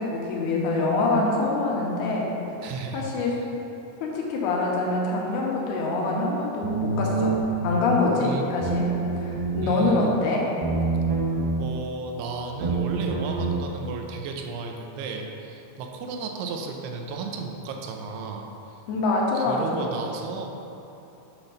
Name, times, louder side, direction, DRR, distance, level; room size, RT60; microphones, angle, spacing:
voice 1, 0.0-2.3 2.9-3.3 4.0-7.4 7.6-10.5 18.9-19.9, left 2 dB, 80° left, -2 dB, 2.9 m, -25 dB
voice 2, 2.6-3.5 8.2-8.4 9.6-10.2 11.6-18.5 19.3-20.5, right 4 dB, 90° right, 2 dB, 2.7 m, -34 dB
sound 1, 6.6-7.6 8.6-9.6 10.6-11.6 12.6-13.6, right 4 dB, 70° right, 2.3 m, -26 dB
8.0 x 5.8 x 3.9 m, 3.0 s
omnidirectional pair, 4.6 m